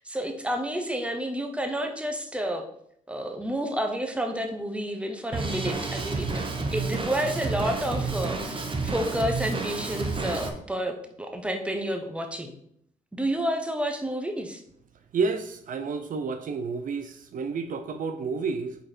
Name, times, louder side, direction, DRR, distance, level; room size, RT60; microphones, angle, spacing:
voice 1, 0.0-2.7 3.1-6.3 6.7-12.6 13.1-14.6, equal, 5° right, 5 dB, 0.9 m, -30 dB
Drum kit, 5.3-10.5, right 3 dB, 35° right, 1.1 m, -30 dB
voice 2, 15.1-18.8, right 4 dB, 60° right, 8 dB, 0.6 m, -30 dB
5.2 x 4.3 x 4.4 m, 0.69 s
cardioid pair, 85°, 16 cm